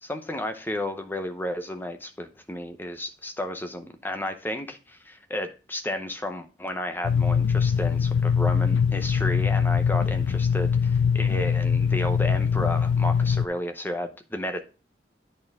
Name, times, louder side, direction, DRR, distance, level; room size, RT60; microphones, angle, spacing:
voice 1, 0.0-14.6, left 1 dB, 10° left, 0.7 m, -32 dB
sound 1, 7.0-13.4, left 6 dB, 75° left, 0.3 m, -23 dB
10.5 x 4.4 x 3.5 m
head